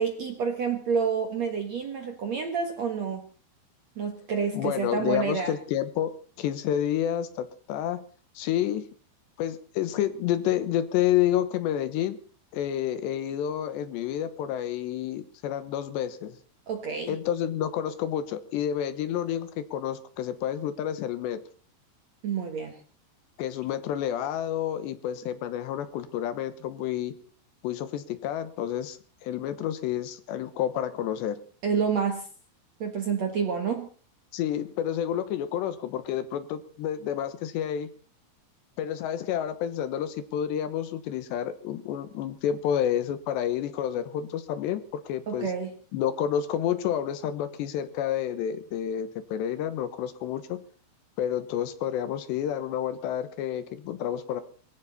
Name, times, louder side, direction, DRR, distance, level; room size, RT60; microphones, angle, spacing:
voice 1, 0.0-3.3 4.0-5.5 16.7-17.2 22.2-22.8 31.6-32.3 32.8-33.9 45.3-45.7, right 6 dB, 55° right, 5 dB, 2.0 m, -28 dB
voice 2, 4.5-6.1 6.4-8.0 8.4-8.9 9.4-12.2 12.5-16.3 17.1-21.4 23.4-27.1 27.6-31.4 34.3-37.9 38.8-45.5 45.9-50.6 51.2-54.4, left 10 dB, 75° left, 13 dB, 3.2 m, -29 dB
22.0 x 15.5 x 4.1 m, 0.40 s
omnidirectional pair, 5.3 m